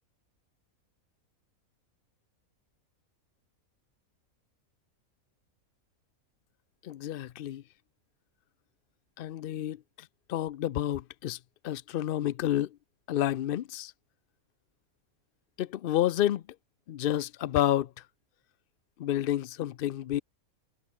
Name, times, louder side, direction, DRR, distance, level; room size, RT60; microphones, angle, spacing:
voice 1, 6.8-7.6 9.2-11.4 11.6-12.8 13.1-13.9 15.6-16.4 16.9-17.9 19.0-20.2, left 12 dB, 70° left, 0.5 m, -30 dB
omnidirectional pair, 1.5 m